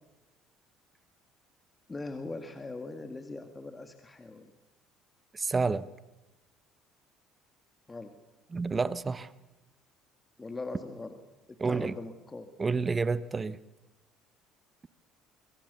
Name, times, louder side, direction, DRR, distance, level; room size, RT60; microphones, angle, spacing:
voice 1, 1.9-4.5 7.9-8.1 10.4-11.2 11.5-12.5, left 3 dB, 20° left, 7 dB, 2.1 m, -41 dB
voice 2, 5.3-5.9 8.5-9.3 11.6-12.0 12.6-13.6, right 4 dB, 25° right, 16 dB, 0.9 m, -29 dB
25.0 x 24.0 x 6.9 m, 1.0 s
supercardioid pair, 95°, 0 cm